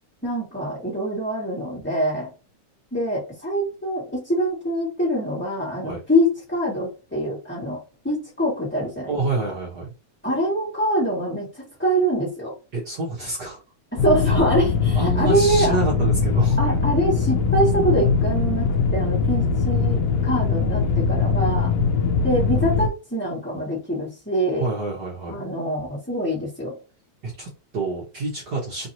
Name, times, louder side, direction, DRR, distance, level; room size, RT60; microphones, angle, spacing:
voice 1, 0.2-2.3 2.9-9.2 9.4-9.5 10.2-12.5 13.9-15.8 16.6-21.7 22.2-24.7 25.3-26.7, equal, 10° left, -7 dB, 0.8 m, -24 dB
voice 2, 9.1-9.9 12.7-13.6 14.9-16.7 24.6-25.4 27.2-28.9, right 3 dB, 65° right, -4 dB, 1.0 m, -27 dB
sound 1, 14.0-22.9, left 4 dB, 75° left, 1.5 m, -21 dB
4.6 x 2.9 x 2.8 m, 0.31 s
omnidirectional pair, 3.6 m